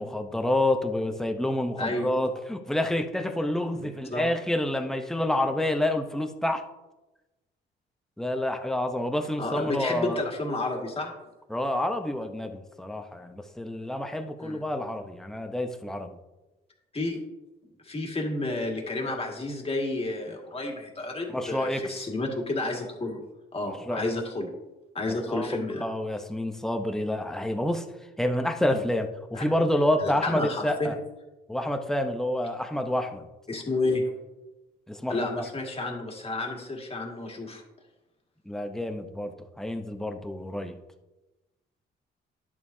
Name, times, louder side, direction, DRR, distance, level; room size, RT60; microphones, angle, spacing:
voice 1, 0.0-6.6 8.2-10.2 11.5-16.2 21.3-22.0 23.9-24.1 25.3-27.9 28.2-31.0 31.5-33.3 34.9-35.4 38.5-40.7, left 1 dB, ahead, 6 dB, 0.7 m, -28 dB
voice 2, 1.8-2.1 3.7-4.3 9.4-11.1 14.4-14.6 16.9-17.2 17.8-23.2 23.5-24.5 24.9-25.8 29.3-29.4 30.0-30.9 33.5-34.0 35.1-37.6, left 2 dB, 30° left, 1 dB, 2.0 m, -31 dB
10.5 x 7.1 x 2.7 m, 1.1 s
cardioid pair, 90°, 20 cm